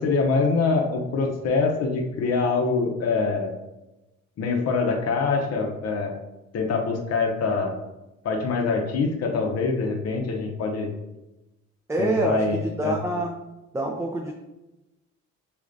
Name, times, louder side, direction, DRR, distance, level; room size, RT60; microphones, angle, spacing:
voice 1, 0.0-3.5 4.4-6.2 6.5-7.8 8.2-10.9 12.0-12.9, left 4 dB, 55° left, 1 dB, 0.8 m, -24 dB
voice 2, 11.9-13.4 13.7-14.3, right 2 dB, 10° right, 0 dB, 0.4 m, -26 dB
6.6 x 2.4 x 2.6 m, 1.0 s
cardioid pair, 90°, 30 cm